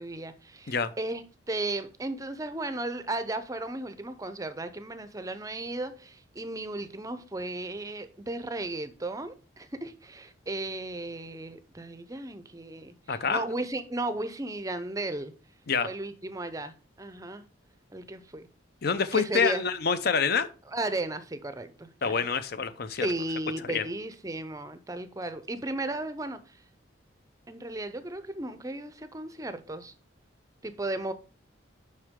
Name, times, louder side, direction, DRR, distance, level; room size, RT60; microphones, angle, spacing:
voice 1, 0.0-15.3 15.8-17.4 17.9-18.5 19.1-19.7 20.7-22.2 22.9-26.6 27.5-29.9 30.6-31.1, right 2 dB, 15° right, 0.5 m, -35 dB
voice 2, 13.1-13.4 15.7-15.9 18.8-20.5 22.0-23.1 23.7-23.8, left 5 dB, 50° left, 0.6 m, -27 dB
8.0 x 5.6 x 3.6 m
head